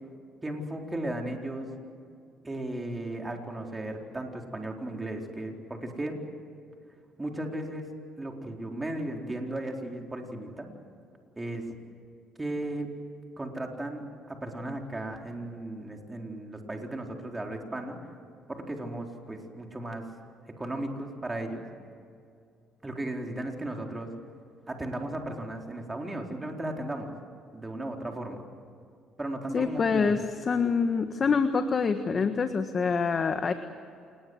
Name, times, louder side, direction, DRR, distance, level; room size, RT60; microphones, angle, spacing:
voice 1, 0.4-1.7 2.4-6.2 7.2-7.9 8.2-10.7 11.4-11.7 12.4-12.9 13.4-18.0 18.5-20.1 20.6-21.6 22.8-24.1 24.7-27.1 27.5-28.5 29.2-30.2, right 1 dB, 15° right, 2 dB, 4.2 m, -35 dB
voice 2, 29.5-33.5, left 5 dB, 40° left, 8 dB, 1.5 m, -26 dB
28.0 x 20.5 x 8.1 m, 2.4 s
cardioid pair, 90°, 0 cm